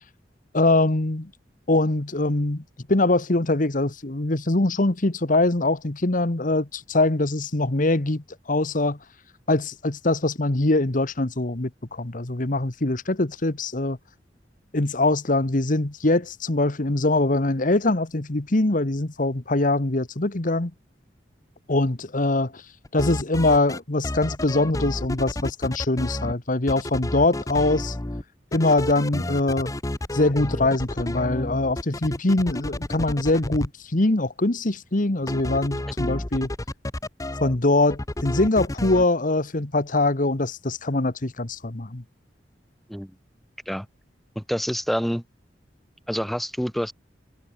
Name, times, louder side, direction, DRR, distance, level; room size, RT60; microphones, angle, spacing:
voice 1, 0.5-1.3 1.7-2.6 2.9-9.0 9.5-14.0 14.7-20.7 21.7-22.5 22.9-27.9 28.5-29.7 30.1-36.5 37.4-42.0, left 2 dB, 50° left, 1.5 m, -23 dB
sound 1, 22.8-23.8 24.0-26.3 26.7-28.2 28.5-33.7 35.3-37.6 37.9-39.0, left 1 dB, 20° left, 0.9 m, -30 dB
voice 2, 44.3-45.2 46.1-46.9, equal, ahead, 1.2 m, -27 dB
head